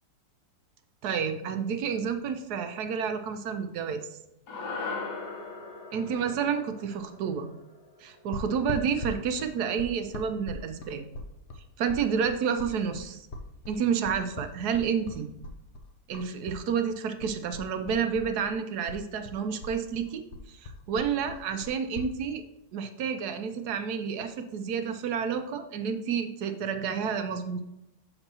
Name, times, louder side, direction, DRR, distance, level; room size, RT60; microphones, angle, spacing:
voice 1, 1.0-4.1 5.9-7.5 8.0-11.0 11.8-13.2 13.7-15.3 16.1-22.4 22.7-27.6, right 7 dB, 70° right, 8 dB, 1.1 m, -30 dB
sound 1, 4.5-8.9, left 4 dB, 65° left, 1.5 m, -39 dB
sound 2, 8.3-16.6 16.9-18.6 18.9-22.1, left 2 dB, 50° left, 0.9 m, -40 dB
6.9 x 6.7 x 2.9 m, 0.86 s
omnidirectional pair, 1.8 m